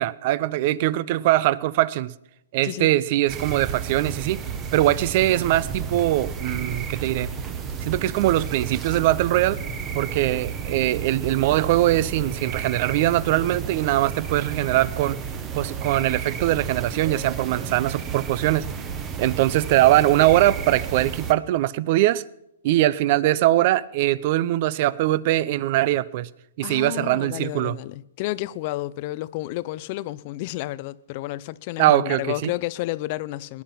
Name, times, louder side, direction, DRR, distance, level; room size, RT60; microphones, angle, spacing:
voice 1, 0.0-2.1 2.5-4.4 4.7-7.3 7.8-9.6 9.9-15.2 15.5-18.7 19.2-22.2 22.6-26.3 26.6-27.8 31.8-32.5, right 15 dB, 40° right, 0.5 m, -21 dB
sound 1, 3.3-21.3, right 6 dB, 20° right, 1.0 m, -32 dB
voice 2, 26.6-33.6, left 17 dB, 35° left, 0.4 m, -31 dB
20.0 x 10.5 x 5.9 m
hypercardioid pair, 160°, 0 cm